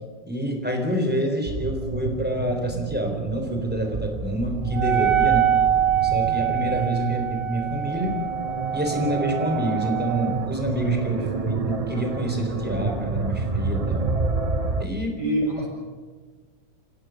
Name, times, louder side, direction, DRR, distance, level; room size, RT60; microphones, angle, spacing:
voice 1, 0.3-5.5 6.0-8.2 8.7-14.1 14.8-15.2, right 1 dB, 5° right, 3 dB, 3.9 m, -27 dB
sound 1, 1.5-14.9, right 3 dB, 30° right, 0.8 m, -29 dB
Wind instrument woodwind instrument, 4.7-10.5, right 10 dB, 55° right, 1.4 m, -24 dB
voice 2, 15.2-15.7, equal, 45° left, -4 dB, 7.5 m, -26 dB
29.5 x 16.0 x 6.5 m, 1.4 s
omnidirectional pair, 1.9 m